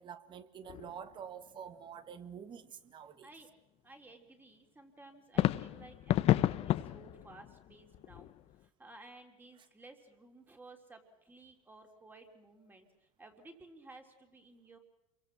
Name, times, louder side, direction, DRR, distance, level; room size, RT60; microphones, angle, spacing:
voice 1, 0.0-3.3, right 8 dB, 25° right, 1.6 m, -47 dB
sound 1, 0.7-1.2 1.5-1.6 5.4-8.6, left 14 dB, 35° left, 0.8 m, -32 dB
voice 2, 3.8-8.3 8.6-14.8, right 2 dB, 10° right, 3.5 m, -56 dB
28.0 x 23.0 x 6.1 m
supercardioid pair, 125°, 17 cm